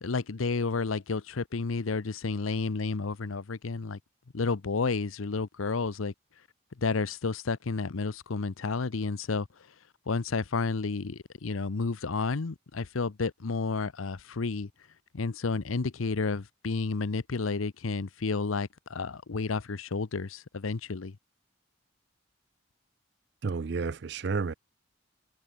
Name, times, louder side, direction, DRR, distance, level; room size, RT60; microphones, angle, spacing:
voice 1, 0.0-4.0 4.3-6.1 6.8-9.5 10.1-14.7 15.1-21.2, left 4 dB, 90° left, 0.7 m, -31 dB
voice 2, 23.4-24.5, right 4 dB, 55° right, 0.4 m, -31 dB
head